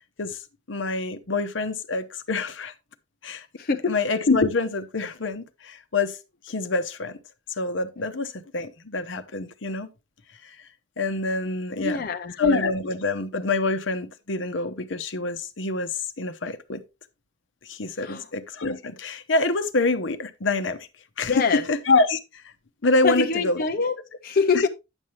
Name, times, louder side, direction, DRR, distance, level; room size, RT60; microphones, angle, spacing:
voice 1, 0.7-2.7 3.2-3.5 3.9-6.2 6.5-7.2 7.6-9.9 11.0-12.0 12.4-16.8 17.7-20.8 21.2-22.2 22.8-23.6, left 3 dB, 80° left, 0.9 m, -26 dB
voice 2, 3.6-4.0 11.7-12.3 18.0-18.3 21.3-21.6 23.0-24.0 24.2-24.7, left 5 dB, 50° left, 0.6 m, -24 dB
9.9 x 7.3 x 3.2 m
head